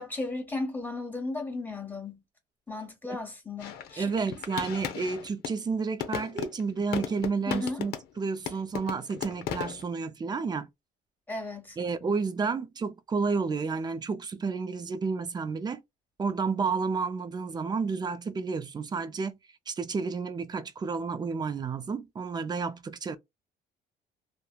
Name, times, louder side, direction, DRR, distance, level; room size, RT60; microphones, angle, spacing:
voice 1, 0.0-2.2 2.7-4.1 7.5-7.8 11.3-11.8, left 2 dB, 10° left, 1.3 m, -35 dB
sound 1, 3.6-5.6 6.0-8.2 8.5-9.8, left 9 dB, 70° left, 0.7 m, -35 dB
voice 2, 4.0-10.7 11.8-15.8 16.2-19.3 19.7-23.2, right 5 dB, 25° right, 0.5 m, -31 dB
3.2 x 2.1 x 2.3 m
cardioid pair, 110°, 17 cm